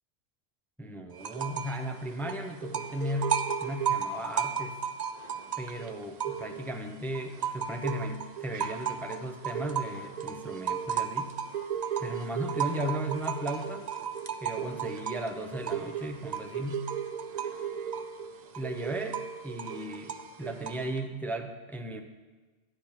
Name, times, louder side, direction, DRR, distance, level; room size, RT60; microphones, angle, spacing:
voice 1, 0.8-4.8 5.6-11.4 12.0-13.9 14.4-16.9 18.5-22.0, right 1 dB, ahead, 5 dB, 0.5 m, -36 dB
sound 1, 1.2-1.8 2.1-6.8 7.1-21.0, right 7 dB, 50° right, 0.5 m, -34 dB
12.0 x 10.0 x 4.4 m, 1.3 s
omnidirectional pair, 1.3 m